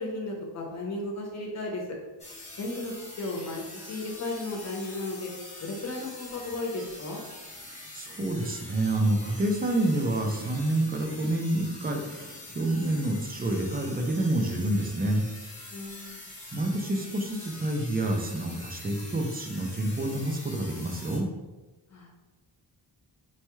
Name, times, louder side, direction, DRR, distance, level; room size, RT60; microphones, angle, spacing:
voice 1, 0.0-1.8 2.6-5.3 5.6-7.2 15.7-16.2 21.9-22.1, left 2 dB, 35° left, -1 dB, 0.7 m, -35 dB
sound 1, 2.2-21.2, left 2 dB, 15° left, 1.0 m, -45 dB
voice 2, 7.6-15.2 16.5-21.3, right 1 dB, 25° right, 3 dB, 0.3 m, -28 dB
4.3 x 2.2 x 3.0 m, 1.2 s
wide cardioid pair, 175°, 44 cm